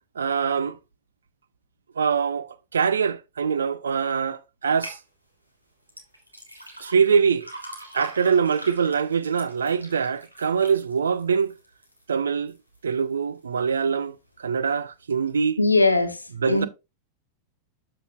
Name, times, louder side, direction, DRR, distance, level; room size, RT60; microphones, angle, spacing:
voice 1, 0.2-0.8 2.0-5.0 6.8-7.5 7.9-11.5 12.1-12.5 12.8-15.6 16.4-16.7, right 6 dB, 70° right, 0.5 m, -23 dB
sound 1, 4.8-5.0 5.9-12.0 12.5-13.0 13.5-13.6, right 1 dB, 85° right, 1.8 m, -41 dB
voice 2, 15.6-16.7, left 2 dB, 85° left, 1.1 m, -21 dB
13.0 x 4.7 x 2.4 m
figure-of-eight pair, 90°, 0 cm